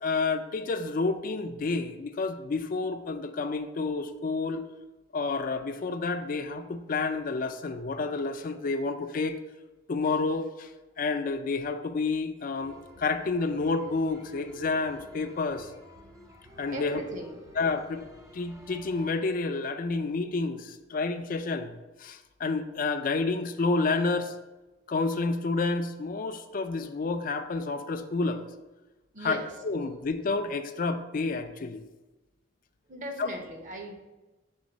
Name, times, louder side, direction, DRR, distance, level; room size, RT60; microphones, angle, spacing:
voice 1, 0.0-4.7 5.1-9.4 9.9-10.7 11.0-15.7 16.6-17.0 17.6-18.0 18.3-21.7 22.0-24.3 24.9-28.5 29.2-29.4 29.6-31.8 33.2-33.3, left 3 dB, 45° left, 9 dB, 0.4 m, -29 dB
sound 1, 12.6-19.1, left 1 dB, 15° right, 0.6 m, -52 dB
voice 2, 16.7-17.6 29.1-29.6 32.9-33.9, right 1 dB, 40° right, 3 dB, 0.9 m, -38 dB
6.3 x 3.9 x 3.9 m, 1.1 s
head